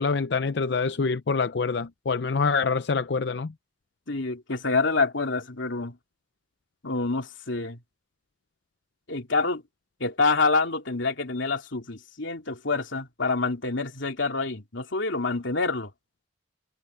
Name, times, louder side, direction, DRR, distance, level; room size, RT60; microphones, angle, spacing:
voice 1, 0.0-3.5, left 4 dB, 65° left, 0.5 m, -26 dB
voice 2, 4.1-6.0 6.8-7.8 9.1-9.6 10.0-15.9, left 3 dB, 90° left, 3.0 m, -27 dB
head